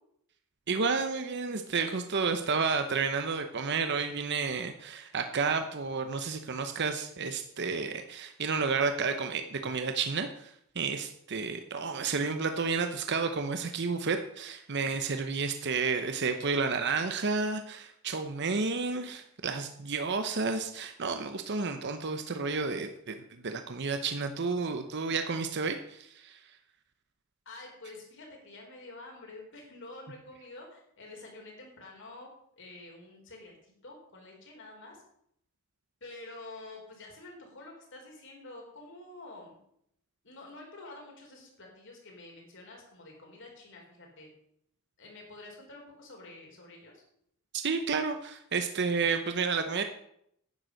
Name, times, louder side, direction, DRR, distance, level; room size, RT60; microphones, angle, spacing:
voice 1, 0.7-26.4 47.5-49.8, right 4 dB, 55° right, 7 dB, 0.9 m, -31 dB
voice 2, 27.5-32.3 32.6-33.6 33.8-35.0 36.0-39.6 40.2-44.3 45.0-47.0, left 2 dB, 60° left, 0 dB, 4.4 m, -48 dB
10.5 x 9.3 x 6.5 m, 0.73 s
head